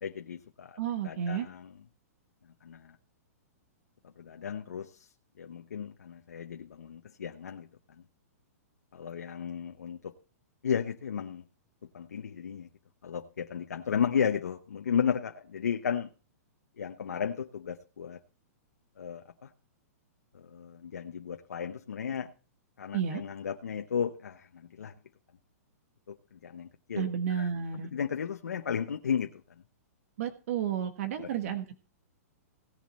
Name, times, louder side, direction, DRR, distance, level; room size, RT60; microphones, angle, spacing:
voice 1, 0.0-1.7 2.6-3.0 4.0-5.1 5.4-7.7 8.9-10.1 10.6-11.5 11.9-12.7 13.0-16.1 16.8-18.2 19.0-19.5 20.3-22.3 22.8-24.9 26.1-27.6 27.9-29.4 31.2-31.3, left 7 dB, 85° left, 0.9 m, -34 dB
voice 2, 0.8-1.5 22.9-23.2 26.9-27.9 30.2-31.8, right 8 dB, 60° right, 1.5 m, -32 dB
17.5 x 7.3 x 4.2 m
hypercardioid pair, 130°, 9 cm